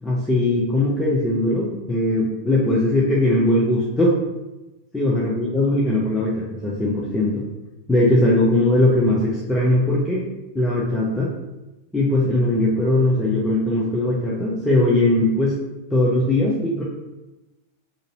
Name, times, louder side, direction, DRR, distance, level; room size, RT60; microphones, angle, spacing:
voice 1, 0.0-4.2 4.9-7.4 7.9-10.2 10.5-11.3 11.9-15.6 15.9-16.8, left 1 dB, 10° left, -6 dB, 0.5 m, -20 dB
2.5 x 2.5 x 3.0 m, 1.0 s
figure-of-eight pair, 90°, 0 cm